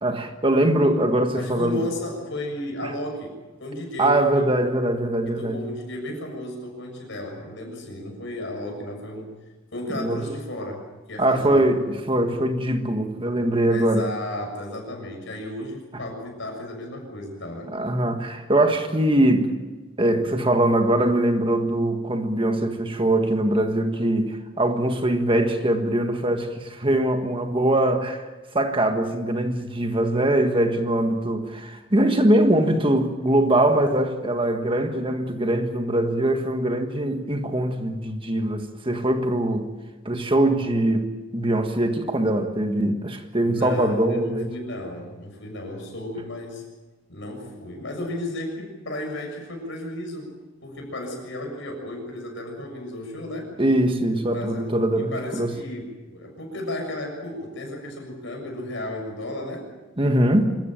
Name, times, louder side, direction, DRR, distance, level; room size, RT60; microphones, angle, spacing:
voice 1, 0.0-1.8 4.0-5.7 9.9-10.3 11.2-14.1 17.7-19.5 20.0-28.3 28.5-39.7 40.0-44.5 53.6-55.5 60.0-60.6, right 1 dB, 25° right, 1.5 m, -22 dB
voice 2, 1.3-3.3 3.6-4.4 5.3-9.3 9.7-11.7 13.7-17.7 43.4-46.6 47.1-50.4 50.6-53.6 54.3-59.7, left 1 dB, 60° left, 6.9 m, -34 dB
25.5 x 14.5 x 9.1 m
head